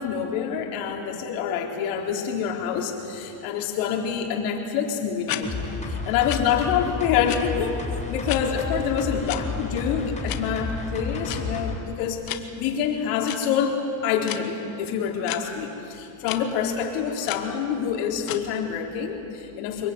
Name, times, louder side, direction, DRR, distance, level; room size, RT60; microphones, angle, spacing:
voice 1, 0.0-5.5 5.9-7.8 8.1-19.9, left 7 dB, 80° left, 1 dB, 4.1 m, -26 dB
sound 1, 5.3-5.4 6.3-6.4 7.3-7.4 8.3-8.4 9.3-9.4 10.3-10.4 11.3-11.4 12.3-12.4 13.2-13.4 14.2-14.4 15.3-15.4 16.2-16.4 17.3-17.4 18.2-18.4, left 15 dB, 55° left, 1.7 m, -31 dB
sound 2, 5.4-11.8 12.1-12.2, left 4 dB, 15° left, 7.6 m, -31 dB
25.0 x 22.5 x 9.5 m, 2.7 s
supercardioid pair, 115°, 43 cm